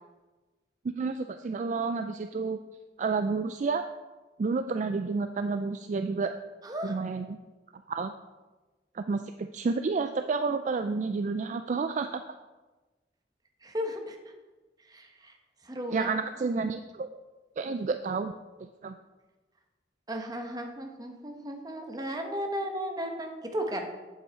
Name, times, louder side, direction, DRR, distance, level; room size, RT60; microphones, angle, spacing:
voice 1, 1.0-2.6 3.0-3.8 4.4-6.4 6.8-7.4 7.9-8.1 8.9-12.2 15.9-17.2 17.6-18.3 18.8-18.9, right 4 dB, 45° right, 8 dB, 0.3 m, -30 dB
voice 2, 6.6-7.0 13.6-14.2 14.9-15.3 15.6-16.1 20.1-23.9, equal, 20° right, 3 dB, 1.0 m, -35 dB
8.0 x 7.5 x 4.4 m, 1.2 s
head